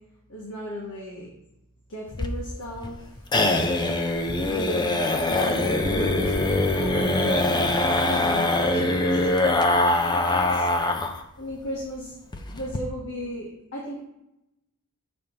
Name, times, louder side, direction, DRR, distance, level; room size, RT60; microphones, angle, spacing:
voice 1, 0.3-1.3 1.9-3.2 4.4-10.7 11.4-12.1 12.5-14.0, equal, 65° left, -4 dB, 1.2 m, -36 dB
sound 1, 2.1-11.2 11.5-11.6 11.9-12.0 12.3-12.8, left 2 dB, 20° left, 0.4 m, -23 dB
6.6 x 2.9 x 5.2 m, 0.86 s
head